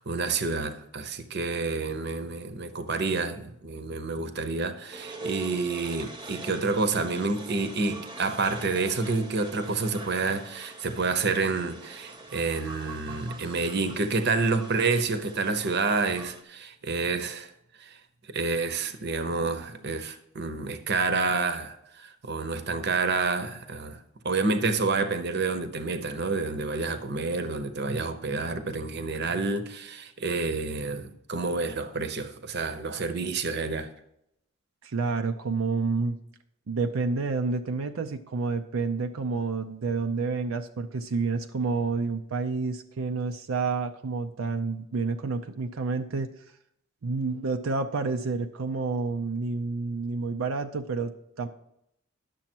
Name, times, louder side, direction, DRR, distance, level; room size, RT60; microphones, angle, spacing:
voice 1, 0.0-17.5 17.8-18.0 18.3-24.0 24.2-33.9, right 3 dB, 55° right, 0.9 m, -29 dB
sound 1, 4.9-16.4, right 2 dB, 20° right, 0.9 m, -43 dB
voice 2, 34.8-36.2 36.7-46.3 47.0-51.5, right 4 dB, 90° right, 0.6 m, -29 dB
10.5 x 7.0 x 4.5 m
head